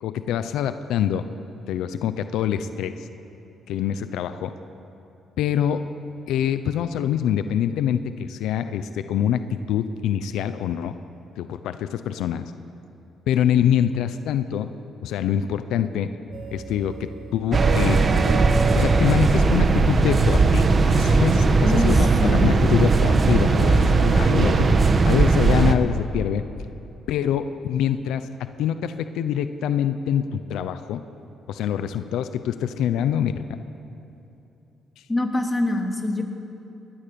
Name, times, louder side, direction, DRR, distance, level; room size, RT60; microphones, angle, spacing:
voice 1, 0.0-1.3 1.7-3.1 3.7-4.5 5.4-5.8 6.3-9.4 9.7-10.9 11.4-12.5 13.3-14.7 15.0-16.1 16.5-18.0 18.8-26.4 27.1-28.3 28.6-31.0 31.5-33.3, left 9 dB, 85° left, 11 dB, 0.8 m, -25 dB
sound 1, 16.3-21.0, right 3 dB, 60° right, 2.4 m, -40 dB
sound 2, 17.5-25.7, right 3 dB, 40° right, 1.4 m, -18 dB
voice 2, 21.6-21.9 22.2-22.6 35.1-36.2, left 2 dB, 15° left, 2 dB, 3.0 m, -24 dB
21.5 x 19.5 x 7.0 m, 2.9 s
cardioid pair, 90°, 0 cm